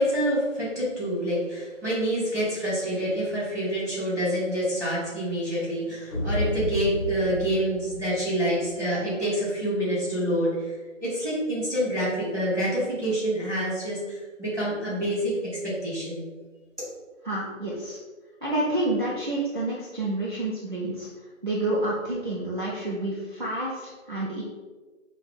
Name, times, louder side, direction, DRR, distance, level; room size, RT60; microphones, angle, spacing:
voice 1, 0.0-10.7 11.0-16.2, equal, 15° right, -16 dB, 1.3 m, -27 dB
sound 1, 6.1-8.7, left 2 dB, 35° left, 1.0 m, -31 dB
voice 2, 17.2-18.0 18.4-21.1 21.4-24.4, right 1 dB, 40° right, -7 dB, 0.5 m, -29 dB
4.5 x 2.2 x 3.4 m, 1.3 s
figure-of-eight pair, 170°, 39 cm